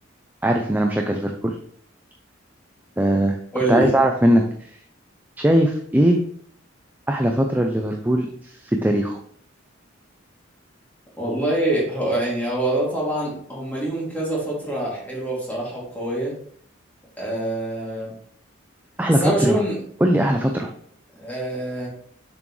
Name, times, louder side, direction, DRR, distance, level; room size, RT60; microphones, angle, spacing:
voice 1, 0.4-1.6 3.0-3.4 3.7-4.4 5.4-6.2 7.1-9.2 19.0-19.6 20.0-20.7, right 1 dB, 10° right, 2 dB, 0.5 m, -20 dB
voice 2, 3.5-3.9 11.2-16.3 17.2-18.1 19.2-19.8 21.2-21.9, right 1 dB, 10° left, -5 dB, 2.8 m, -25 dB
7.2 x 6.1 x 3.2 m, 0.62 s
head